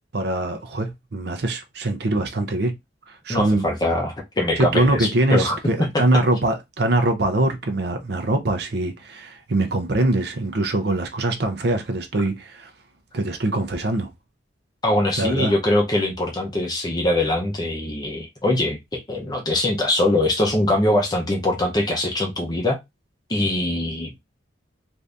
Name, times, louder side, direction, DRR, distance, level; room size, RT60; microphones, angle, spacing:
voice 1, 0.1-2.7 3.1-3.6 4.6-12.7 13.1-14.1 15.2-15.5, right 2 dB, 60° right, 0.6 m, -23 dB
voice 2, 3.3-6.0 14.8-22.8 23.3-24.2, left 1 dB, 20° left, 0.7 m, -22 dB
2.6 x 2.5 x 3.3 m
head